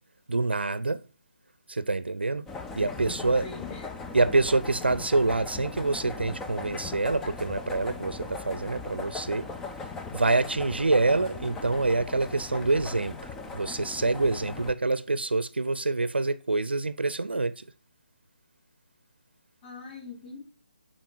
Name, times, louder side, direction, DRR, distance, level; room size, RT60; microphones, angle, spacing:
voice 1, 0.3-1.0 1.7-2.5 2.8-3.4 4.1-9.5 10.1-17.6, right 3 dB, 75° right, 0.6 m, -26 dB
sound 1, 2.5-14.7, left 4 dB, 5° left, 0.3 m, -39 dB
voice 2, 3.1-4.0 19.6-20.4, left 4 dB, 25° left, 4.4 m, -42 dB
9.1 x 4.3 x 4.6 m
figure-of-eight pair, 150°, 6 cm